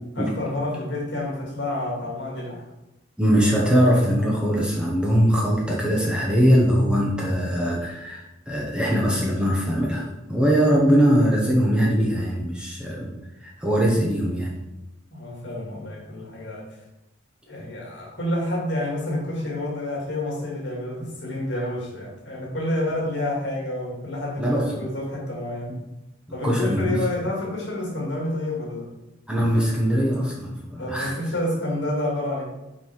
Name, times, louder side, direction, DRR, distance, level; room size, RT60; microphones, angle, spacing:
voice 1, 0.1-2.6 15.1-16.7 17.5-25.7 26.3-28.9 30.8-32.4, left 1 dB, 60° left, -3 dB, 2.6 m, -29 dB
voice 2, 3.2-13.1 13.4-14.5 24.4-24.8 26.4-27.0 29.3-31.2, equal, 5° right, -4 dB, 1.2 m, -21 dB
6.0 x 5.5 x 4.7 m, 0.96 s
head